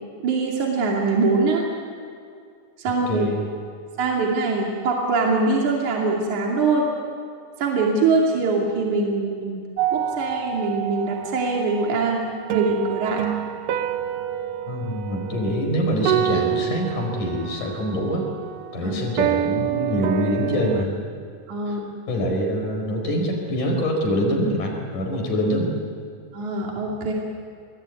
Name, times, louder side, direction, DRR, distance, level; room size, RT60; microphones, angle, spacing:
voice 1, 0.2-1.6 2.8-3.3 4.0-6.9 7.6-9.6 9.9-13.2 18.8-19.0 21.5-21.9 26.3-27.1, right 3 dB, 65° right, -2 dB, 4.0 m, -23 dB
voice 2, 3.1-3.4 14.7-18.3 18.7-20.9 21.7-21.8 22.1-25.7, equal, 75° left, 2 dB, 6.4 m, -24 dB
sound 1, 9.8-20.9, right 11 dB, 85° right, 2.5 m, -28 dB
24.5 x 22.0 x 9.7 m, 2.4 s
omnidirectional pair, 3.6 m